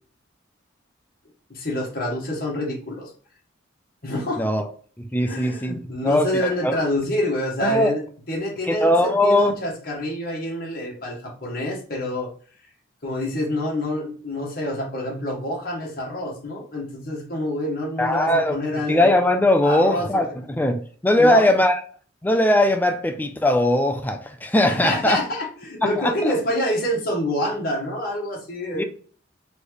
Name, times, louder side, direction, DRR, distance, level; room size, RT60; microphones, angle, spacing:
voice 1, 1.5-3.1 4.0-4.4 5.2-12.3 13.0-19.1 19.6-20.3 21.2-21.5 24.7-28.8, left 1 dB, 50° left, 1.4 m, -27 dB
voice 2, 4.4-4.7 5.0-6.7 7.6-7.9 8.7-9.5 18.0-18.5 18.9-21.8 22.2-25.2 25.8-26.3 28.7-28.8, left 1 dB, 10° left, 0.5 m, -20 dB
4.3 x 3.4 x 3.1 m
head